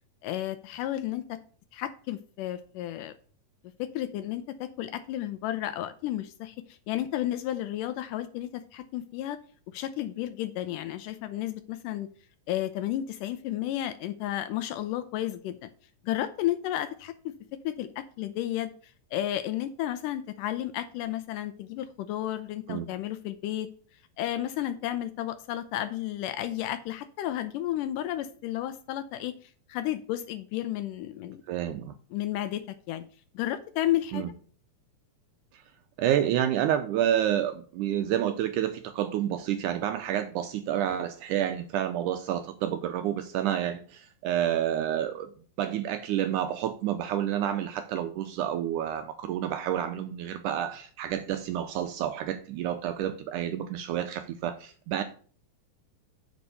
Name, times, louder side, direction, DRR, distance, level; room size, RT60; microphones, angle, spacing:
voice 1, 0.2-1.4 1.7-3.1 3.8-9.4 9.7-12.1 12.5-15.7 16.0-17.3 17.6-18.7 19.1-23.7 24.2-29.4 29.7-31.4 32.1-33.0 33.3-34.2, left 13 dB, 80° left, 12 dB, 2.0 m, -32 dB
voice 2, 31.5-32.0 34.1-34.3 35.5-35.6 36.0-45.3 45.6-55.0, right 11 dB, 80° right, 9 dB, 1.9 m, -29 dB
8.4 x 4.4 x 6.7 m, 0.43 s
omnidirectional pair, 4.1 m